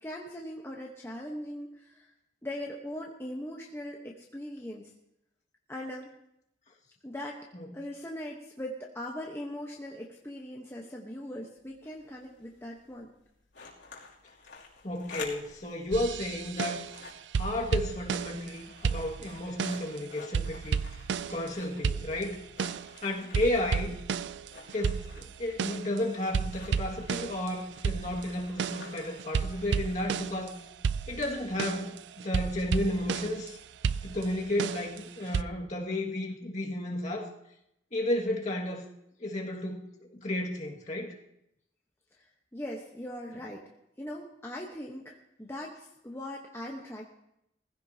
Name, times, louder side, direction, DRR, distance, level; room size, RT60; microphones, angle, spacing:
voice 1, 0.0-2.1 2.4-4.9 5.7-6.1 7.0-7.4 7.7-13.1 42.2-43.7 44.0-47.0, left 1 dB, 15° left, -2 dB, 1.1 m, -40 dB
sound 1, 11.6-30.5, left 4 dB, 85° left, 2.8 m, -51 dB
voice 2, 14.8-16.9 17.4-20.8 21.3-22.4 23.0-24.0 24.7-30.5 31.1-33.6 34.0-37.3 37.9-38.8 39.2-41.1, left 1 dB, 40° left, -2 dB, 2.0 m, -33 dB
sound 2, 15.9-17.0 17.3-18.5 18.8-20.0 20.3-21.5 21.8-23.0 23.3-26.0 26.3-30.5 30.8-33.5 33.8-35.4, right 6 dB, 75° right, 0.4 m, -32 dB
19.5 x 15.5 x 2.8 m, 0.81 s
head